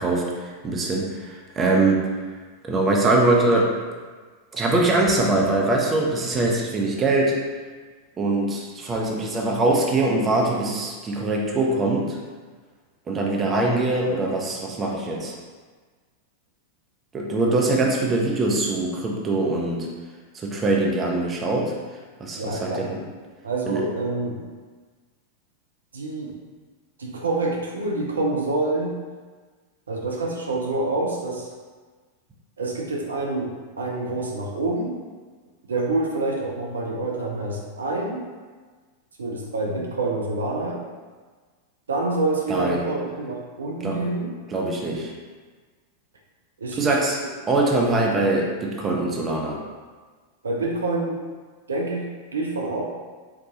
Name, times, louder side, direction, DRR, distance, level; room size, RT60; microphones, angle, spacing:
voice 1, 0.0-2.1 2.6-3.7 4.5-7.4 8.2-12.2 13.1-15.3 17.1-19.9 20.3-21.8 22.2-23.0 23.7-23.8 42.5-42.9 43.8-44.1 44.5-45.1 46.8-47.2 47.5-49.6, right 2 dB, 20° right, -1 dB, 0.5 m, -22 dB
voice 2, 22.4-22.9 23.4-24.4 25.9-26.4 27.0-28.9 29.9-31.5 32.6-35.0 35.7-38.3 39.2-40.9 41.9-44.3 46.6-47.0 50.4-51.2 51.7-52.8, right 2 dB, 70° right, -1 dB, 0.4 m, -27 dB
4.0 x 2.2 x 2.7 m, 1.4 s
figure-of-eight pair, 90°, 0 cm